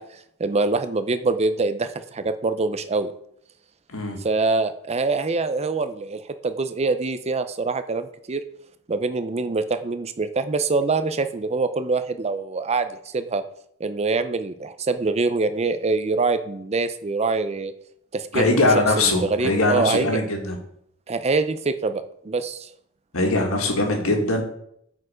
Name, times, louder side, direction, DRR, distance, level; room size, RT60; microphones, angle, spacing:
voice 1, 0.0-3.1 4.2-8.4 8.9-13.4 13.8-17.7 18.1-18.6 19.0-20.2 21.1-22.7, right 3 dB, 30° right, 11 dB, 0.5 m, -24 dB
voice 2, 18.3-20.6 23.1-24.4, left 2 dB, 85° left, 2 dB, 1.8 m, -21 dB
8.3 x 4.6 x 5.0 m, 0.70 s
head